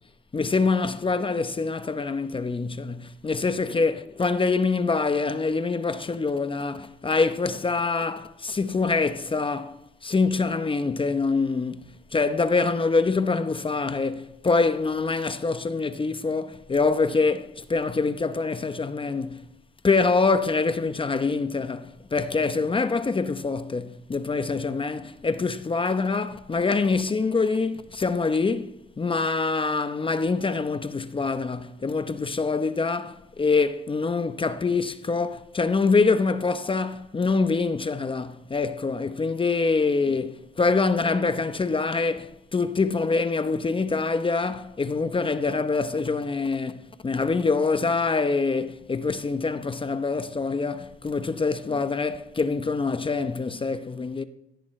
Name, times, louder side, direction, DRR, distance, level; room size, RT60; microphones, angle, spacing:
voice 1, 0.3-19.4 19.8-54.2, left 4 dB, 25° left, 0.9 m, -25 dB
17.5 x 15.5 x 3.2 m
cardioid pair, 90°, 20 cm